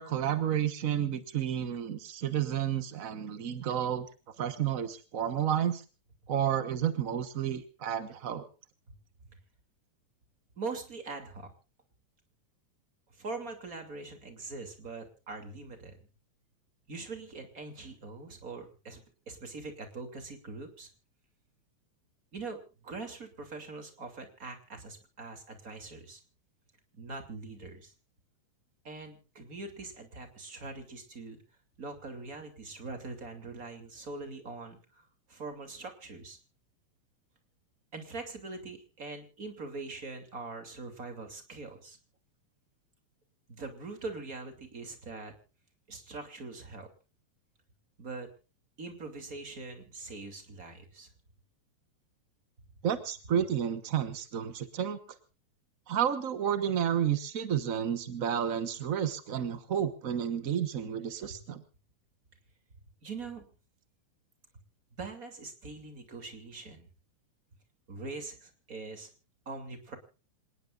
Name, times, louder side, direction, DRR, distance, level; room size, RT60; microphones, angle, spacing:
voice 1, 0.0-4.1 4.4-5.8 6.3-8.4 52.8-55.0 55.9-61.6, right 9 dB, 60° right, 10 dB, 0.8 m, -31 dB
voice 2, 10.6-11.5 13.1-16.1 16.9-20.9 22.3-26.2 26.9-27.9 28.8-31.4 31.8-36.4 37.9-42.0 43.5-45.3 45.9-46.9 48.0-48.3 48.8-51.1 63.0-63.4 65.0-66.9 67.9-69.1 69.5-70.0, right 3 dB, 30° right, 5 dB, 3.0 m, -42 dB
27.0 x 19.0 x 2.5 m, 0.34 s
omnidirectional pair, 3.3 m